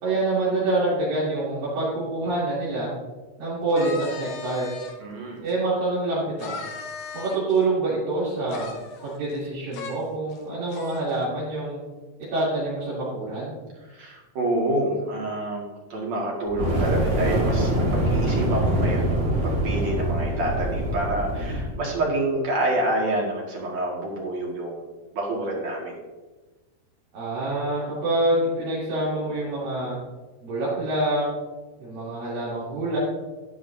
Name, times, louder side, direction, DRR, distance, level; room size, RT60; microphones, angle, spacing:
voice 1, 0.0-2.9 3.4-4.7 5.4-6.6 7.1-8.7 9.0-11.8 12.3-13.6 27.1-30.0 30.4-31.3 31.8-33.0, right 2 dB, 85° right, -10 dB, 4.7 m, -26 dB
sound 1, 3.7-5.0 5.5-5.6 6.4-7.6 8.5-9.5 9.7-9.9 10.3-10.4 10.7-11.2, left 4 dB, 70° left, 2.4 m, -37 dB
voice 2, 5.0-5.4 13.9-15.6 15.9-25.9, right 1 dB, 55° right, -3 dB, 2.9 m, -28 dB
Fire, 16.5-21.8, right 1 dB, 30° right, 1.4 m, -24 dB
11.5 x 11.0 x 2.7 m, 1.2 s
omnidirectional pair, 4.0 m